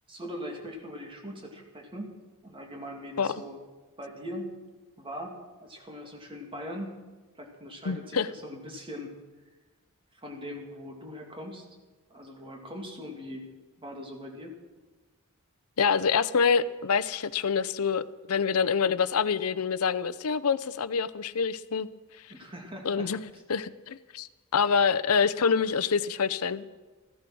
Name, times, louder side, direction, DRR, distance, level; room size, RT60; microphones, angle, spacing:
voice 1, 0.1-2.1 2.4-3.6 4.0-4.5 5.0-6.9 7.3-9.1 10.1-11.7 12.1-13.5 13.8-14.6 22.3-23.1, equal, 25° right, 1 dB, 2.7 m, -41 dB
voice 2, 7.9-8.3 15.8-18.0 18.3-21.9 22.8-26.7, left 6 dB, 85° left, 16 dB, 0.6 m, -26 dB
15.0 x 14.0 x 6.2 m, 1.3 s
head